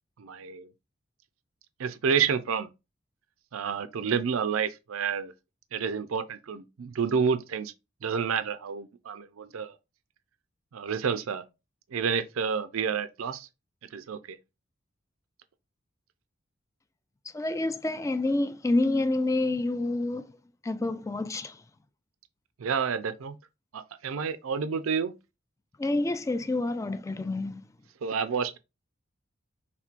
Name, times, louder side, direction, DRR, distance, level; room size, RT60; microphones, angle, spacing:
voice 1, 0.2-0.7 1.8-2.7 3.5-5.3 5.7-7.7 8.0-9.7 10.7-11.4 11.9-13.5 13.9-14.4 22.6-23.4 23.7-25.1 28.0-28.6, right 6 dB, 90° right, 0.5 m, -29 dB
voice 2, 17.3-20.3 20.6-21.6 25.8-27.6, left 2 dB, 15° left, 0.3 m, -28 dB
5.9 x 3.6 x 2.4 m
head